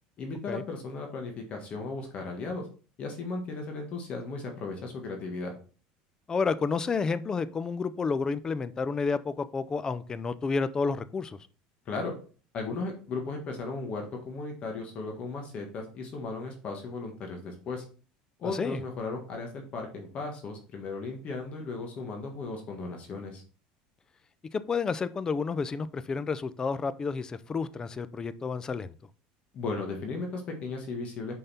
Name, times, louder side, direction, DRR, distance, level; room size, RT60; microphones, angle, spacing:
voice 1, 0.2-2.7 3.0-5.5 11.8-12.1 12.5-17.8 18.4-23.4 29.5-31.4, left 3 dB, 40° left, 2 dB, 1.6 m, -36 dB
voice 2, 6.3-11.4 18.5-18.8 24.5-28.9, left 4 dB, 20° left, 14 dB, 0.5 m, -30 dB
5.5 x 5.4 x 4.3 m, 0.39 s
supercardioid pair, 130°, 3 cm